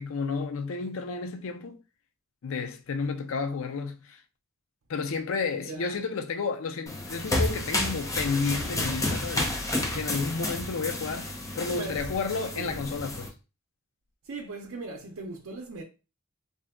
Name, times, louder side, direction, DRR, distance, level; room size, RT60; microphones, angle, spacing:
voice 1, 0.0-1.8 2.4-4.2 4.9-9.5 9.9-13.3, left 4 dB, 65° left, 0.5 m, -31 dB
voice 2, 5.7-6.0 11.7-12.1 12.5-12.8 14.2-15.8, right 3 dB, 70° right, 0.5 m, -39 dB
sound 1, 6.9-13.3, left 1 dB, 15° left, 0.6 m, -31 dB
2.7 x 2.2 x 3.5 m
head